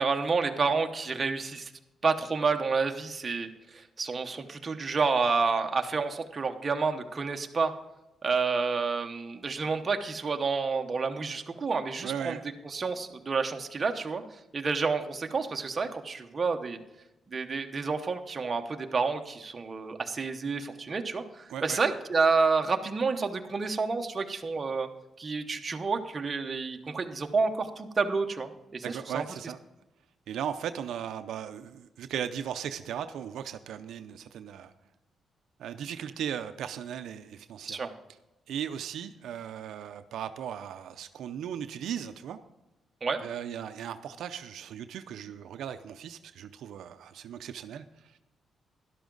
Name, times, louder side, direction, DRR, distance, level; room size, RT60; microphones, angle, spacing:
voice 1, 0.0-1.7 2.0-7.7 8.2-12.4 12.6-14.2 14.5-16.8 17.3-24.9 25.2-29.2 37.7-37.9 43.0-43.2, right 4 dB, 30° right, 5 dB, 0.9 m, -29 dB
voice 2, 12.0-12.4 21.5-21.8 28.8-29.6 30.3-34.7 35.6-37.8 38.5-42.4 43.2-48.2, right 9 dB, 85° right, 9 dB, 0.5 m, -37 dB
12.0 x 11.5 x 3.9 m, 0.98 s
cardioid pair, 125°, 0 cm